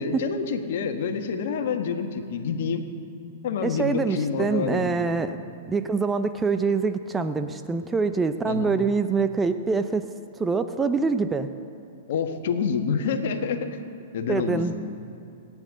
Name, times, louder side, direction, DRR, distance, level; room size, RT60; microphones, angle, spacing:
voice 1, 0.0-2.8 3.4-5.1 8.5-8.7 12.1-13.7 14.1-14.7, left 6 dB, 60° left, 6 dB, 1.5 m, -27 dB
voice 2, 3.6-5.4 5.7-10.1 10.4-11.5 14.3-14.7, right 4 dB, 15° right, 9 dB, 0.6 m, -25 dB
27.5 x 9.9 x 3.8 m, 2.8 s
hypercardioid pair, 115°, 0 cm